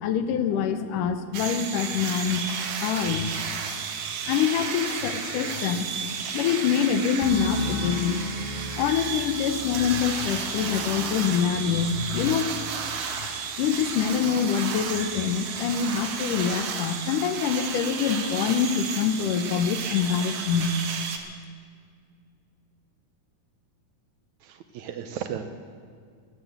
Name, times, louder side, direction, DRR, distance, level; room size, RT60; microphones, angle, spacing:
voice 1, 0.0-2.4 2.8-3.3 4.3-5.9 6.3-8.2 8.8-12.5 13.2-13.3 13.6-20.8, left 7 dB, 80° left, 10 dB, 2.3 m, -25 dB
sound 1, 1.3-21.2, right 6 dB, 60° right, 1.9 m, -33 dB
sound 2, 7.2-14.7 15.0-15.5, left 2 dB, 20° left, 1.7 m, -37 dB
voice 2, 24.4-25.4, right 9 dB, 75° right, 8 dB, 1.9 m, -35 dB
14.5 x 12.0 x 7.8 m, 2.1 s
omnidirectional pair, 3.8 m